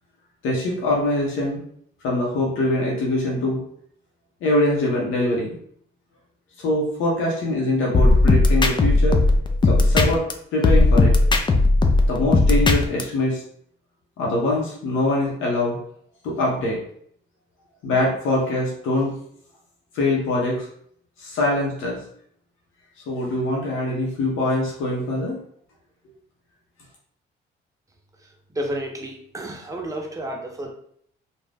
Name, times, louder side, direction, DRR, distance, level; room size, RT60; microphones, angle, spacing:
voice 1, 0.4-1.6 2.0-3.6 4.4-5.6 6.6-9.2 9.6-10.2 10.5-11.1 12.1-13.4 14.2-15.8 16.2-16.8 17.8-19.1 19.9-20.7 21.2-22.0 23.1-25.4, left 2 dB, 85° left, -3 dB, 0.8 m, -23 dB
sound 1, 7.9-10.3 10.6-13.0, left 2 dB, 25° left, 0.4 m, -16 dB
voice 2, 28.5-30.7, right 1 dB, 15° right, 0 dB, 0.7 m, -31 dB
2.6 x 2.2 x 3.3 m, 0.65 s
cardioid pair, 90°, 20 cm